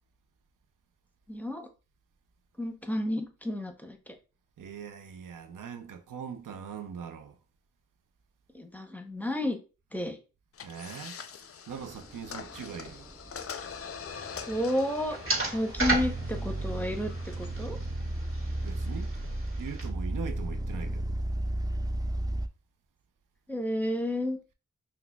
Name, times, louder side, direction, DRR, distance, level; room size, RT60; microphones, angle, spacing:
voice 1, 1.3-1.7 2.6-4.2 8.5-9.6 9.9-10.2 14.5-15.2 15.5-17.8 23.5-24.4, left 1 dB, 5° left, 0.8 m, -31 dB
voice 2, 4.6-7.4 10.6-11.2 11.7-13.1 18.6-19.1 19.6-21.1, right 7 dB, 90° right, 0.5 m, -41 dB
sound 1, 10.5-17.7, left 7 dB, 50° left, 0.4 m, -44 dB
sound 2, 11.7-22.5, right 1 dB, 15° right, 0.3 m, -34 dB
sound 3, 14.1-19.9, right 2 dB, 45° right, 1.6 m, -36 dB
5.9 x 2.2 x 2.3 m
cardioid pair, 45°, 31 cm